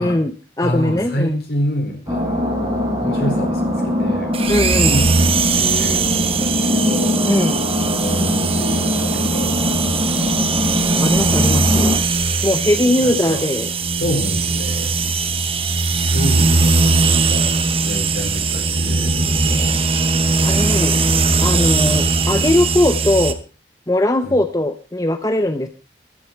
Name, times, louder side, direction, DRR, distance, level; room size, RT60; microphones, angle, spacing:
voice 1, 0.0-1.4 4.5-5.0 7.3-7.6 11.0-12.0 12.4-13.7 20.4-21.0 21.4-23.4 23.9-25.7, left 1 dB, 20° left, 8 dB, 0.7 m, -19 dB
voice 2, 0.6-4.4 4.6-7.3 7.8-10.5 12.7-13.5 14.0-14.9 16.1-17.6 17.8-19.8 21.9-22.1 24.2-24.4, equal, 65° left, 4 dB, 4.5 m, -28 dB
sound 1, 2.1-12.0, left 1 dB, 15° right, 4.6 m, -22 dB
sound 2, 4.3-23.3, right 4 dB, 30° right, 1.0 m, -19 dB
14.5 x 12.0 x 4.6 m, 0.34 s
head